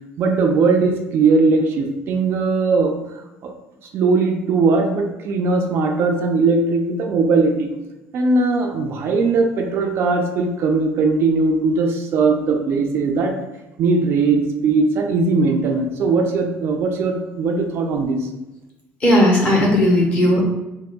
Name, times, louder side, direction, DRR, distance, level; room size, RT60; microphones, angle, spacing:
voice 1, 0.2-3.0 3.4-3.5 3.9-7.7 8.1-13.4 13.8-18.3, right 3 dB, 55° right, 3 dB, 0.4 m, -19 dB
voice 2, 19.0-20.4, left 1 dB, 25° left, -3 dB, 1.1 m, -15 dB
3.7 x 2.6 x 2.2 m, 1.0 s
cardioid pair, 120°, 5 cm